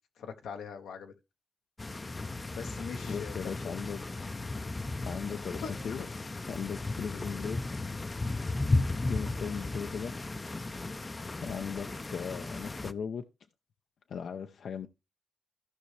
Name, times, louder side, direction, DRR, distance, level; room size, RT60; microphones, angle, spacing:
voice 1, 0.2-1.1 2.5-3.8 5.6-6.1, left 6 dB, 85° left, 1.0 m, -42 dB
sound 1, 1.8-12.9, left 2 dB, 25° left, 0.6 m, -35 dB
voice 2, 3.0-4.3 5.0-7.9 9.1-10.1 11.4-13.2 14.1-14.9, left 7 dB, 70° left, 0.6 m, -38 dB
14.5 x 5.5 x 3.2 m
cardioid pair, 75°, 0 cm